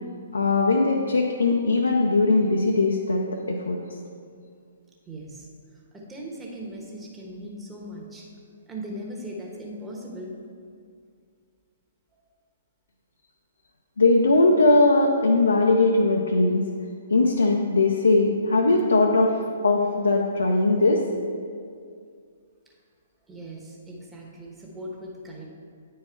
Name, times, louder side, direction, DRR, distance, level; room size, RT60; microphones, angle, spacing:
voice 1, 0.3-3.8 14.0-16.6 17.1-19.4 19.6-21.0, left 2 dB, 80° left, 1 dB, 0.6 m, -20 dB
voice 2, 5.1-5.5 5.9-8.3 8.7-10.4 23.3-25.5, equal, 10° right, -2 dB, 1.3 m, -38 dB
9.2 x 4.7 x 4.6 m, 2.3 s
figure-of-eight pair, 125°, 0 cm